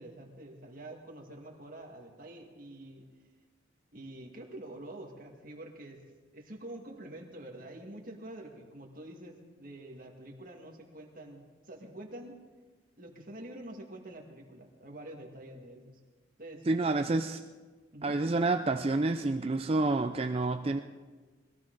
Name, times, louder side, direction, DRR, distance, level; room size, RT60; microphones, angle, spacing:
voice 1, 0.0-3.1 3.9-6.0 6.3-12.4 13.0-16.0 16.4-16.8 17.9-18.2, right 1 dB, 45° right, 1 dB, 2.1 m, -47 dB
voice 2, 16.7-17.4 18.0-20.8, right 2 dB, 30° right, 7 dB, 0.4 m, -28 dB
21.0 x 14.5 x 3.9 m, 1.3 s
head